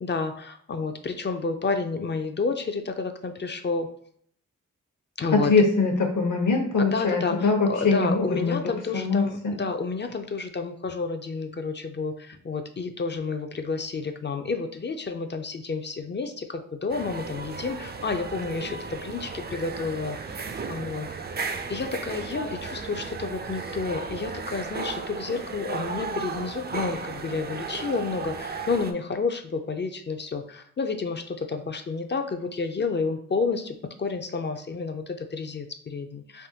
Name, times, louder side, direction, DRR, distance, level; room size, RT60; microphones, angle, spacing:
voice 1, 0.0-3.9 5.2-5.5 6.9-21.1 21.7-36.5, left 4 dB, 35° left, 7 dB, 0.4 m, -30 dB
voice 2, 5.3-9.5, left 4 dB, 65° left, 2 dB, 0.8 m, -23 dB
sound 1, 16.9-28.9, right 4 dB, 30° right, 0.4 m, -35 dB
3.5 x 2.2 x 2.7 m, 0.62 s
cardioid pair, 45°, 33 cm